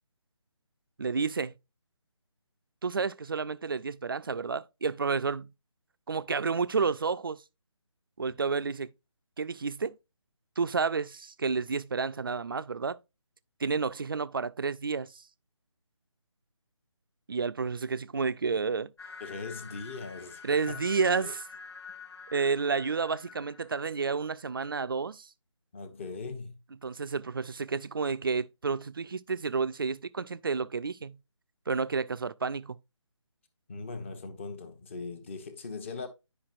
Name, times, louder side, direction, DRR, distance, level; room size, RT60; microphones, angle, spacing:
voice 1, 1.0-1.5 2.8-5.5 6.1-7.4 8.2-8.9 9.4-10.0 10.6-13.0 13.6-15.2 17.3-18.9 20.4-21.4 22.3-25.3 26.8-31.2 31.7-32.8, right 5 dB, 45° right, 0.4 m, -30 dB
sound 1, 19.0-24.0, left 5 dB, 55° left, 0.8 m, -47 dB
voice 2, 19.2-20.4 20.7-20.8 21.2-21.3 25.7-26.6 33.7-36.1, left 4 dB, 25° left, 0.9 m, -40 dB
9.9 x 5.3 x 2.4 m
figure-of-eight pair, 155°, 16 cm